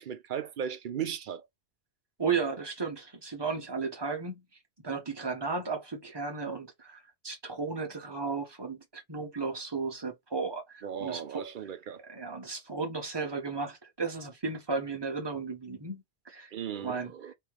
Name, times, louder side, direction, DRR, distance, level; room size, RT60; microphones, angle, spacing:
voice 1, 0.0-1.5 10.8-12.0 16.5-17.3, right 8 dB, 55° right, 0.6 m, -36 dB
voice 2, 2.2-4.4 4.8-11.5 12.1-16.5 16.8-17.3, right 4 dB, 25° right, 1.1 m, -34 dB
3.3 x 3.0 x 3.3 m
omnidirectional pair, 1.1 m